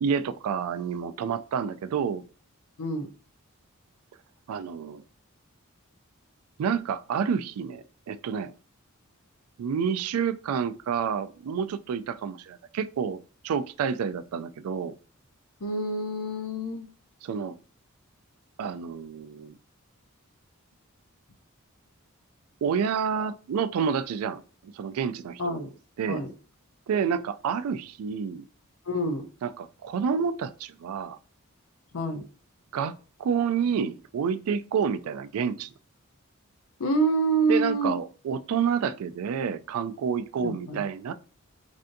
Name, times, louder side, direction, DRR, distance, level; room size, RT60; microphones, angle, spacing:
voice 1, 0.0-2.2 4.5-5.0 6.6-8.5 9.6-13.2 13.4-14.9 17.2-17.6 18.6-19.5 22.6-24.4 24.7-25.7 26.0-26.2 26.9-28.5 29.4-31.2 32.7-35.7 37.5-41.1, right 7 dB, 85° right, 0.3 m, -29 dB
voice 2, 2.8-3.1 15.6-16.9 25.4-25.7 26.1-26.3 28.9-29.3 31.9-32.2 36.8-38.0 40.4-40.8, right 2 dB, 80° left, 0.6 m, -27 dB
3.3 x 2.6 x 2.5 m
head